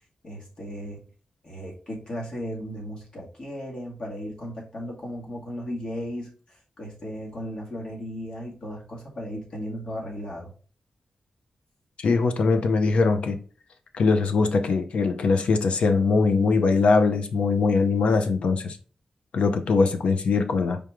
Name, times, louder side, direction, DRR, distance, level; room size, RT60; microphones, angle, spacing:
voice 1, 0.2-1.0 1.4-10.5, equal, 45° left, 2.1 m, -36 dB
voice 2, 12.0-13.4 13.9-18.8 19.3-20.8, left 4 dB, 75° left, 0.7 m, -21 dB
4.7 x 3.6 x 3.0 m
wide cardioid pair, 150°, 2 cm